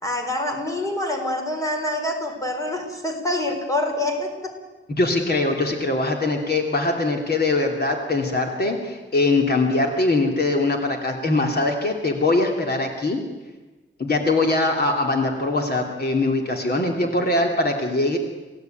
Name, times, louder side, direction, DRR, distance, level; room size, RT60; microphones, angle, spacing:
voice 1, 0.0-4.5, left 1 dB, 15° left, 4 dB, 4.1 m, -26 dB
voice 2, 4.9-13.2 14.0-18.2, left 2 dB, 50° left, 2 dB, 3.0 m, -22 dB
28.5 x 17.5 x 9.2 m, 1.2 s
wide cardioid pair, 160°, 21 cm